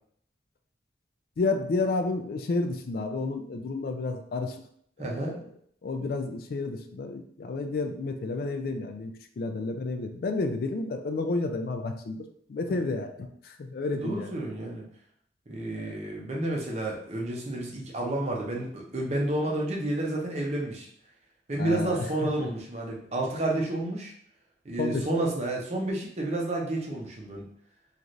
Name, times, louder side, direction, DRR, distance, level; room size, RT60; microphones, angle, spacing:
voice 1, 1.4-4.6 5.0-5.5 5.8-14.3 15.7-15.9 21.6-22.5 24.8-25.1, left 3 dB, 55° left, 6 dB, 0.3 m, -31 dB
voice 2, 5.0-5.4 12.7-12.9 13.9-14.8 15.5-20.9 21.5-24.1 24.6-27.4, right 1 dB, 40° right, -2 dB, 0.6 m, -30 dB
3.1 x 2.4 x 2.5 m, 0.64 s
head